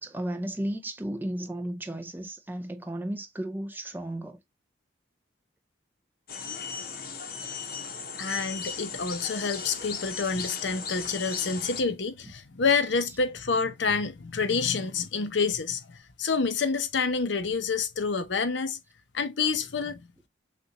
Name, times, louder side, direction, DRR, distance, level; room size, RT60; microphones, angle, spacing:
voice 1, 0.0-4.4 6.8-7.0 8.4-8.5 10.3-10.5, right 1 dB, 10° right, 0.5 m, -34 dB
sound 1, 6.3-11.8, left 6 dB, 50° left, 0.9 m, -37 dB
voice 2, 8.2-18.8 19.1-20.1, left 5 dB, 75° left, 0.7 m, -28 dB
6.5 x 2.5 x 2.9 m
head